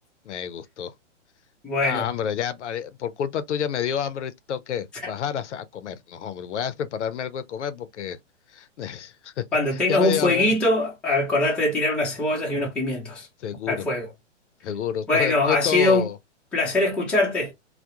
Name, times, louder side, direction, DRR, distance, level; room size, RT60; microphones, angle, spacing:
voice 1, 0.3-0.9 1.8-8.2 8.5-9.4 9.7-10.5 13.4-13.9 14.6-16.2, left 8 dB, 70° left, 0.5 m, -29 dB
voice 2, 1.6-2.1 9.5-13.3 13.7-14.1 15.1-16.1 16.5-17.5, left 2 dB, 5° left, 0.5 m, -22 dB
2.2 x 2.1 x 2.7 m
hypercardioid pair, 135°, 37 cm